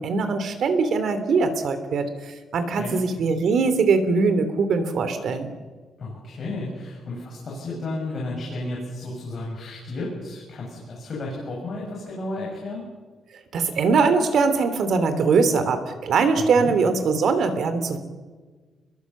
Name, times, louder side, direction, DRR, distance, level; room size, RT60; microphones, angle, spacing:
voice 1, 0.0-2.1 2.5-5.5 13.5-18.0, right 4 dB, 55° right, 10 dB, 2.8 m, -21 dB
voice 2, 6.0-12.8 16.4-16.7, left 2 dB, 35° left, -3 dB, 7.3 m, -33 dB
29.5 x 22.0 x 7.3 m, 1.4 s
cardioid pair, 170°, 0 cm